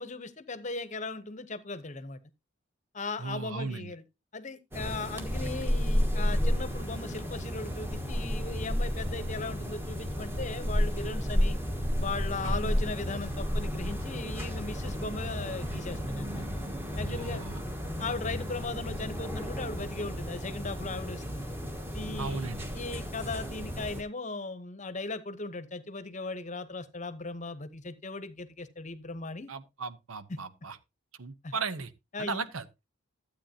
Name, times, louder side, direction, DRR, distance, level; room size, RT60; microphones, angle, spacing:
voice 1, 0.0-2.2 2.9-4.0 4.3-11.6 12.0-16.5 17.0-17.4 18.0-21.5 21.9-29.5 31.4-31.5 32.1-32.5, left 3 dB, 35° left, 0.9 m, -38 dB
voice 2, 3.2-3.9 12.4-12.6 17.0-17.6 22.2-22.6 29.5-30.8 31.2-31.9 32.2-32.8, right 4 dB, 80° right, 0.9 m, -36 dB
sound 1, 4.7-24.0, equal, 10° right, 1.4 m, -32 dB
13.0 x 8.4 x 2.8 m
head